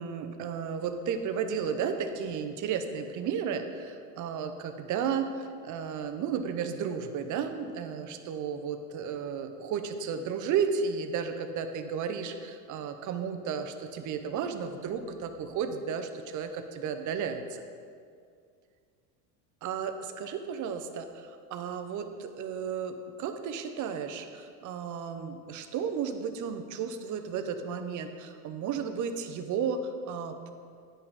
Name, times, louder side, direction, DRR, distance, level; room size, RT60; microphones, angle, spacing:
voice 1, 0.0-17.6 19.6-30.5, right 6 dB, 40° right, 8 dB, 0.7 m, -33 dB
9.6 x 5.6 x 4.0 m, 2.2 s
supercardioid pair, 105°, 49 cm